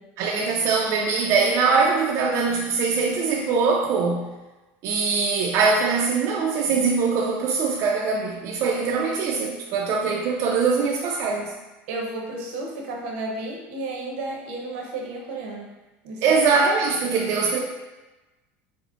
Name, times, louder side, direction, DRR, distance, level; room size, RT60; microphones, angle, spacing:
voice 1, 0.2-4.3 4.8-11.5 16.2-17.6, right 4 dB, 55° right, -2 dB, 0.4 m, -22 dB
voice 2, 11.9-15.7 16.0-16.4, right 2 dB, 80° right, -1 dB, 0.7 m, -32 dB
5.0 x 2.0 x 2.3 m, 1.1 s
supercardioid pair, 125°, 6 cm